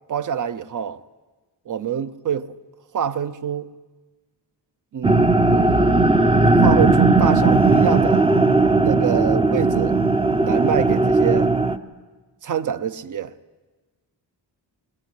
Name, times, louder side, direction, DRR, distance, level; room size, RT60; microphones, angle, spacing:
voice 1, 0.1-1.0 1.7-2.6 2.9-3.7 4.9-5.2 5.4-6.1 6.6-8.3 8.8-10.0 10.4-11.5 12.4-13.3, right 8 dB, 45° right, 0.8 m, -25 dB
sound 1, 5.0-11.8, right 3 dB, 15° right, 0.6 m, -17 dB
20.5 x 19.5 x 9.5 m
wide cardioid pair, 165°, 43 cm